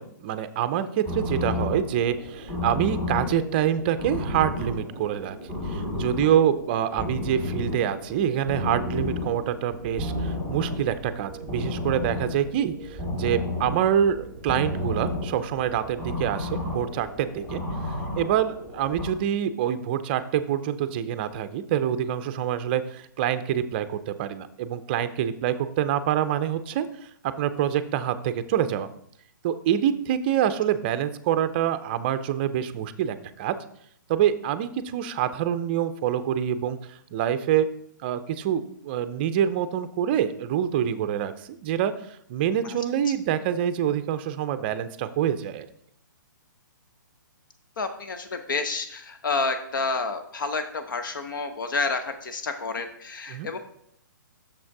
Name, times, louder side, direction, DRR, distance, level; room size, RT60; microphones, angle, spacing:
voice 1, 0.0-17.6 18.2-26.9 27.2-28.9 29.4-33.6 34.1-36.8 37.1-37.7 38.0-41.9 42.3-45.7 53.3-53.5, right 10 dB, 30° right, 12 dB, 0.5 m, -26 dB
sound 1, 1.1-19.1, left 1 dB, 25° left, 2.3 m, -32 dB
voice 2, 47.8-53.6, left 4 dB, 75° left, 9 dB, 0.8 m, -29 dB
6.6 x 6.2 x 4.6 m, 0.70 s
hypercardioid pair, 160°, 11 cm